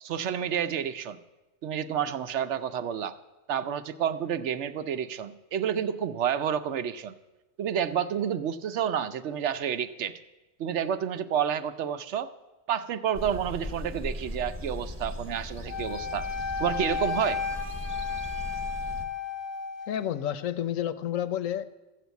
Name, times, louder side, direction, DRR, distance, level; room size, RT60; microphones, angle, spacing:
voice 1, 0.0-1.2 1.6-3.1 3.5-7.1 7.6-10.2 10.6-12.3 12.7-16.3 16.6-17.4, right 8 dB, 65° right, 12 dB, 0.9 m, -29 dB
sound 1, 13.1-19.0, equal, 10° right, 0.9 m, -38 dB
Wind instrument woodwind instrument, 15.7-20.0, left 5 dB, 20° left, 0.6 m, -33 dB
voice 2, 19.9-21.7, left 10 dB, 75° left, 13 dB, 1.1 m, -30 dB
13.5 x 7.6 x 8.1 m, 1.1 s
omnidirectional pair, 1.4 m